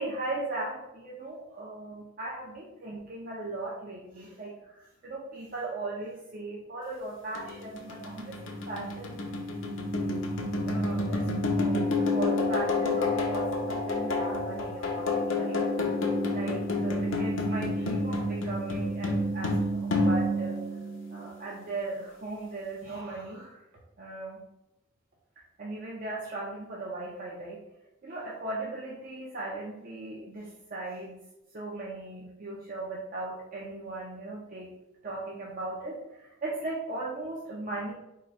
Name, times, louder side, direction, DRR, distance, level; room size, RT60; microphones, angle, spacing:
voice 1, 0.0-9.3 10.6-15.6 16.3-20.6 21.1-23.6 24.0-24.4 25.6-27.6 28.0-31.2 31.5-34.7 35.0-37.9, right 2 dB, 45° right, -4 dB, 0.6 m, -38 dB
sound 1, 7.4-21.5, left 2 dB, 65° left, 0.7 m, -29 dB
3.8 x 2.3 x 4.2 m, 0.91 s
head